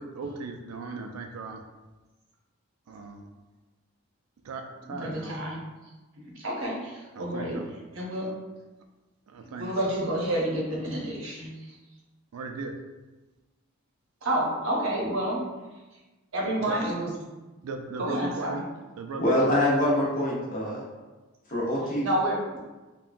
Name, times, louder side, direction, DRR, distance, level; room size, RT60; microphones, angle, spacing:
voice 1, 0.0-1.6 2.9-3.3 4.4-5.4 7.2-7.7 9.3-9.9 12.3-12.7 16.6-16.8 17.6-18.6 19.0-19.5, right 3 dB, 90° right, 4 dB, 0.4 m, -37 dB
voice 2, 4.9-5.6 6.4-7.6 7.9-8.3 9.6-11.8 14.2-15.4 16.3-17.1 18.0-18.6 22.0-22.6, right 1 dB, 65° right, -3 dB, 0.7 m, -29 dB
voice 3, 19.2-20.8 21.5-22.1, left 1 dB, 40° left, -6 dB, 0.8 m, -24 dB
3.6 x 2.2 x 2.5 m, 1.2 s
head